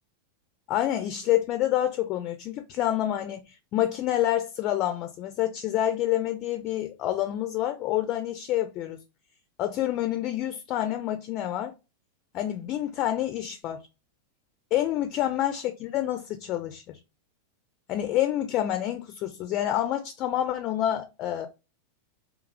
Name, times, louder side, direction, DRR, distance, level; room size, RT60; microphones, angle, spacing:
voice 1, 0.7-9.0 9.6-11.7 12.3-13.8 14.7-17.0 17.9-21.5, left 12 dB, 35° left, 0.3 m, -28 dB
2.8 x 2.4 x 2.4 m
figure-of-eight pair, 90°, 0 cm